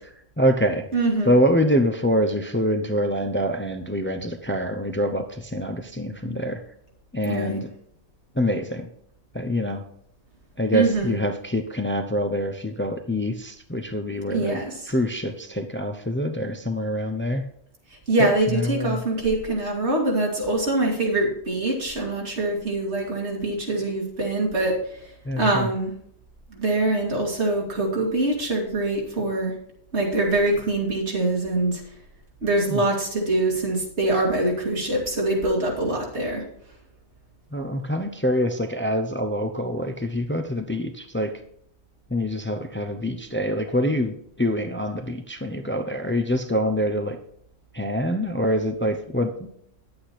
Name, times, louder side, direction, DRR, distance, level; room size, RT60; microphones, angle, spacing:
voice 1, 0.4-0.9 1.3-6.6 7.1-7.7 8.4-8.9 9.3-9.8 10.6-14.6 14.9-17.4 18.2-19.0 25.2-25.7 32.7-32.8 37.5-41.3 42.1-47.2 47.7-49.3, equal, 15° left, 6 dB, 0.6 m, -25 dB
voice 2, 0.9-1.4 7.3-7.6 10.7-11.1 14.3-14.9 18.1-25.1 25.4-25.9 26.5-29.5 29.9-31.8 32.4-36.4, right 2 dB, 85° right, -1 dB, 2.6 m, -24 dB
9.8 x 8.6 x 4.3 m, 0.68 s
omnidirectional pair, 1.1 m